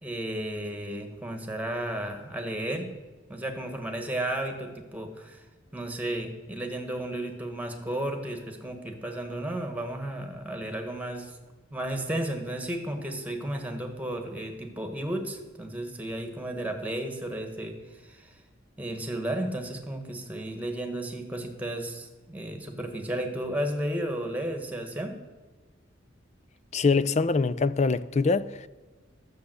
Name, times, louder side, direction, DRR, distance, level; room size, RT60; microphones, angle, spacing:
voice 1, 0.0-2.9 3.3-5.4 5.7-11.4 11.7-18.3 18.8-25.1, right 1 dB, 10° right, 1.4 m, -33 dB
voice 2, 26.7-28.7, left 4 dB, 35° left, 0.4 m, -24 dB
12.0 x 7.0 x 7.8 m
head